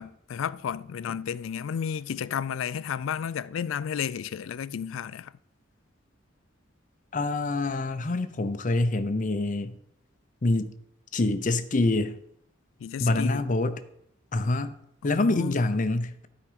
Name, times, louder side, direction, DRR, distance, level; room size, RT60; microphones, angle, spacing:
voice 1, 0.0-5.3 12.8-13.4 15.0-15.6, left 8 dB, 80° left, 0.3 m, -32 dB
voice 2, 7.1-9.8 10.4-10.7 11.1-12.2 13.0-13.8 14.3-14.7 15.0-16.3, left 2 dB, 40° left, 0.6 m, -26 dB
12.0 x 4.9 x 5.1 m
head